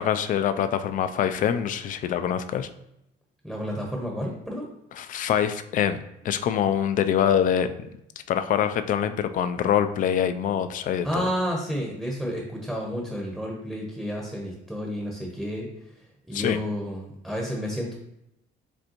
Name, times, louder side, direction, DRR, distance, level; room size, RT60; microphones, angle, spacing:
voice 1, 0.0-2.7 5.0-7.9 8.3-11.3 16.3-16.6, left 9 dB, 55° left, 11 dB, 0.4 m, -25 dB
voice 2, 3.4-4.7 11.0-15.7 16.3-17.9, equal, 5° right, -1 dB, 0.8 m, -31 dB
5.1 x 3.4 x 2.9 m, 0.84 s
cardioid pair, 110°, 17 cm